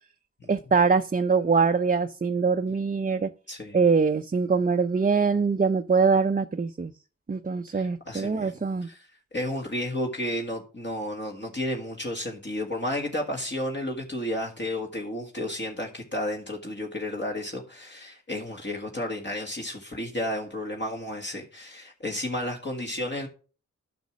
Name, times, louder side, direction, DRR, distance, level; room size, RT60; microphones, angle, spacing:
voice 1, 0.5-3.3 3.7-6.9 7.3-8.9, right 5 dB, 30° right, 0.6 m, -23 dB
voice 2, 3.5-3.8 7.7-8.5 8.8-23.3, left 1 dB, 40° left, 1.8 m, -32 dB
9.4 x 6.1 x 6.2 m
cardioid pair, 55°, 29 cm